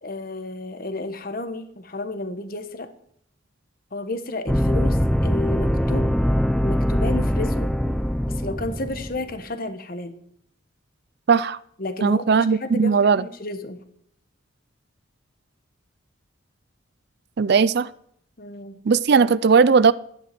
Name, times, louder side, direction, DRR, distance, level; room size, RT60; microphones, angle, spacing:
voice 1, 0.0-2.9 3.9-6.1 6.6-7.7 8.3-10.2 11.8-13.8 18.4-18.8, left 2 dB, 45° left, 9 dB, 1.2 m, -32 dB
sound 1, 4.5-9.4, equal, 5° left, 0.5 m, -22 dB
voice 2, 11.3-11.6 12.0-13.2 17.4-17.9 18.9-19.9, right 5 dB, 50° right, 18 dB, 0.4 m, -17 dB
12.5 x 10.5 x 6.0 m, 0.68 s
head